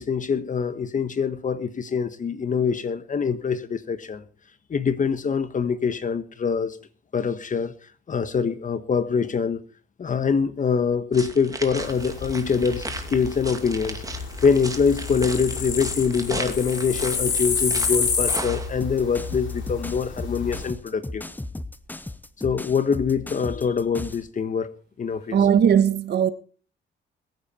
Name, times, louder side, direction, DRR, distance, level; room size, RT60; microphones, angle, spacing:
voice 1, 0.0-4.2 4.7-6.8 7.1-7.7 8.1-9.6 10.0-14.0 14.4-21.3 22.4-24.7 25.0-25.4, left 6 dB, 40° left, 1.5 m, -24 dB
sound 1, 11.1-18.7, right 2 dB, 15° right, 2.3 m, -36 dB
sound 2, 11.8-20.7, left 5 dB, 75° left, 5.8 m, -29 dB
sound 3, 18.8-24.3, left 1 dB, 10° left, 0.9 m, -36 dB
voice 2, 25.3-26.3, right 8 dB, 60° right, 1.4 m, -18 dB
21.5 x 8.9 x 4.4 m
cardioid pair, 90°, 20 cm